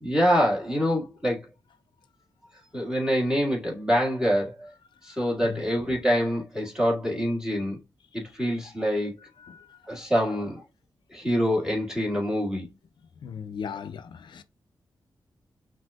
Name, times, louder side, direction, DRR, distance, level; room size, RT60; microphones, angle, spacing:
voice 1, 0.0-1.4 2.7-4.7 5.0-7.8 8.1-9.1 9.9-10.6 11.1-12.7, equal, 10° right, 1.8 m, -25 dB
voice 2, 13.2-14.4, left 7 dB, 75° left, 0.4 m, -37 dB
5.9 x 2.6 x 2.3 m
wide cardioid pair, 125°, 8 cm